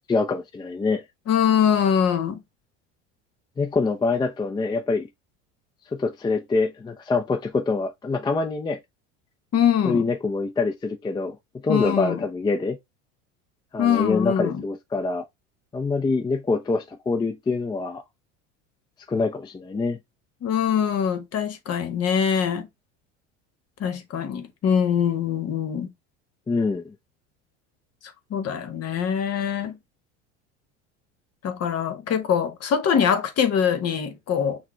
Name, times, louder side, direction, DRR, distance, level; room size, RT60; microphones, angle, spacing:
voice 1, 0.1-1.0 3.6-5.1 5.9-8.8 9.8-11.4 11.6-12.8 13.7-15.2 15.7-18.0 19.1-20.0 26.5-26.9, left 3 dB, 10° left, 0.5 m, -25 dB
voice 2, 1.3-2.4 9.5-10.0 11.7-12.2 13.8-14.6 20.4-22.7 23.8-25.9 28.3-29.8 31.4-34.6, left 8 dB, 45° left, 1.1 m, -23 dB
5.8 x 2.3 x 3.1 m
hypercardioid pair, 90°, 36 cm